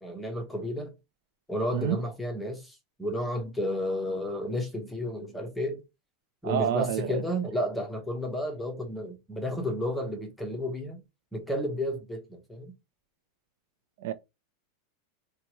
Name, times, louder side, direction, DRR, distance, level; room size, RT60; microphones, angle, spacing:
voice 1, 0.0-0.9 1.5-5.8 6.4-11.0 11.3-12.7, left 1 dB, 5° left, 0.7 m, -32 dB
voice 2, 6.4-7.2 14.0-14.1, right 9 dB, 55° right, 0.4 m, -28 dB
4.5 x 2.2 x 2.8 m
supercardioid pair, 175°, 0 cm